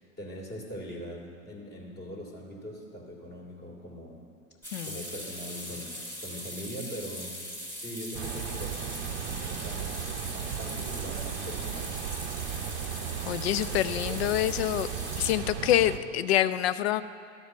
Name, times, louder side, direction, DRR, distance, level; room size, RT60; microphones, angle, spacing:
voice 1, 0.0-4.2 4.8-5.9 6.2-7.4 7.8-12.0 13.6-14.3, equal, 25° left, -2 dB, 2.2 m, -42 dB
sound 1, 4.6-15.3, equal, 5° left, 2.1 m, -40 dB
voice 2, 4.7-5.0 13.2-14.9 15.2-17.0, left 13 dB, 55° left, 15 dB, 0.5 m, -26 dB
sound 2, 8.1-16.0, right 9 dB, 50° right, 0.6 m, -36 dB
12.5 x 5.1 x 7.0 m, 2.4 s
hypercardioid pair, 100°, 39 cm